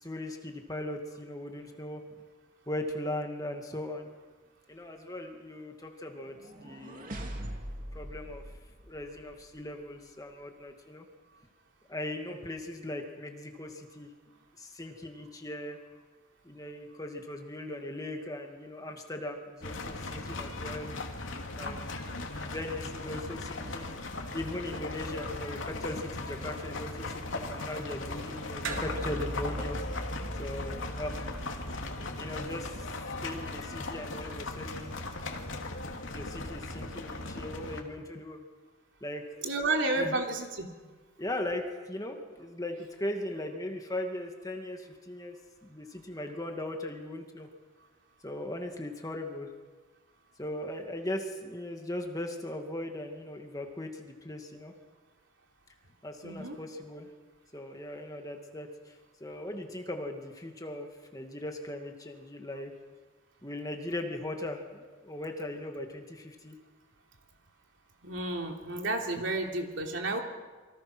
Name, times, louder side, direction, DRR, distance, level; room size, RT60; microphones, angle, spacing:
voice 1, 0.0-2.0 2.7-4.1 4.7-7.1 7.9-8.4 8.9-11.1 11.9-14.1 14.6-15.8 16.4-21.0 21.6-24.0 24.3-29.8 30.4-31.3 32.2-32.9 33.2-34.9 36.1-38.4 39.0-39.2 40.0-40.2 41.2-47.5 48.2-49.5 50.4-54.7 56.0-57.1 57.5-62.7 63.4-66.6, left 1 dB, 15° left, 3 dB, 2.1 m, -39 dB
sound 1, 6.3-9.4, equal, 40° right, 2.9 m, -42 dB
sound 2, 19.6-37.8, left 2 dB, 75° left, 2.9 m, -38 dB
sound 3, 28.6-33.4, right 1 dB, 85° right, 3.4 m, -40 dB
voice 2, 39.4-40.7 56.2-56.6 68.0-70.2, right 2 dB, 65° right, 2 dB, 3.4 m, -31 dB
28.0 x 25.0 x 6.2 m, 1.3 s
head